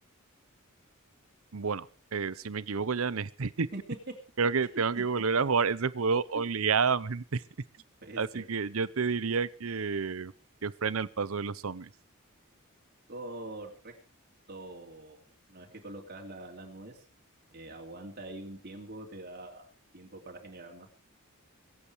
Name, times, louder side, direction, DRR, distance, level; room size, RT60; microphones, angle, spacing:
voice 1, 1.5-3.7 4.4-7.4 8.2-10.3 10.6-11.9, right 5 dB, 70° right, 19 dB, 0.7 m, -29 dB
voice 2, 8.0-8.5 13.1-13.9 14.5-15.2 15.5-17.1 17.5-20.9, right 1 dB, 50° right, 0 dB, 2.8 m, -44 dB
23.5 x 8.7 x 4.7 m, 0.37 s
head